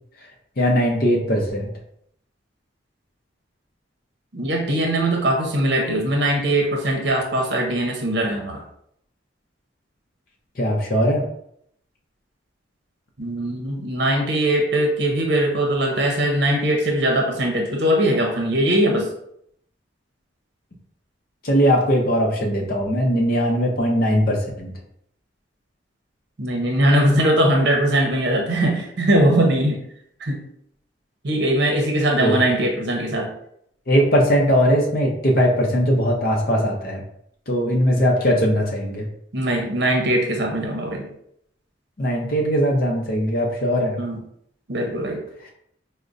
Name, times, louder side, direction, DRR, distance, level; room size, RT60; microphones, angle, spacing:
voice 1, 0.6-1.7 10.6-11.2 21.4-24.7 32.2-32.3 33.9-37.0 37.5-39.0 42.0-44.0, equal, 50° left, 0 dB, 0.6 m, -20 dB
voice 2, 4.3-8.6 13.2-19.1 26.4-29.8 30.2-30.4 31.2-33.3 39.3-41.1 44.0-44.2 44.7-45.2, right 1 dB, 65° right, 2 dB, 0.7 m, -21 dB
5.1 x 2.1 x 2.5 m, 0.70 s
head